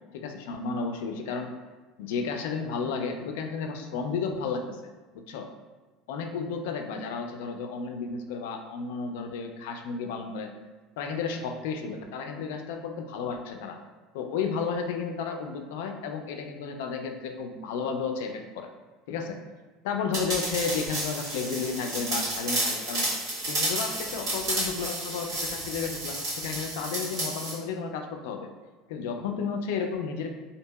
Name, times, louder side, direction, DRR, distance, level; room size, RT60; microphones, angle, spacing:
voice 1, 0.1-1.5 2.0-4.8 5.1-5.5 6.1-10.5 11.0-13.8 14.1-18.7 19.1-19.4 19.8-23.1 23.5-28.5 28.9-30.4, left 5 dB, 80° left, 5 dB, 0.3 m, -32 dB
sound 1, 20.1-27.6, right 1 dB, 40° right, 1.3 m, -31 dB
2.7 x 2.6 x 2.2 m, 1.3 s
cardioid pair, 150°, 0 cm